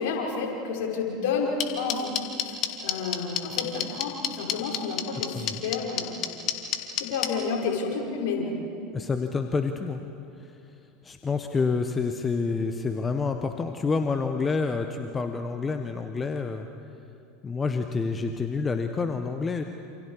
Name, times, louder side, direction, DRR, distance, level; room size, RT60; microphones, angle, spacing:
voice 1, 0.0-6.2 7.0-8.5, left 5 dB, 65° left, 0 dB, 5.2 m, -30 dB
sound 1, 1.6-7.3, left 10 dB, 45° left, 2.5 m, -26 dB
voice 2, 8.9-10.0 10.4-10.6 11.0-16.7 17.4-19.6, left 4 dB, 20° left, 6 dB, 1.3 m, -28 dB
29.0 x 28.0 x 4.9 m, 2.6 s
hypercardioid pair, 80°, 0 cm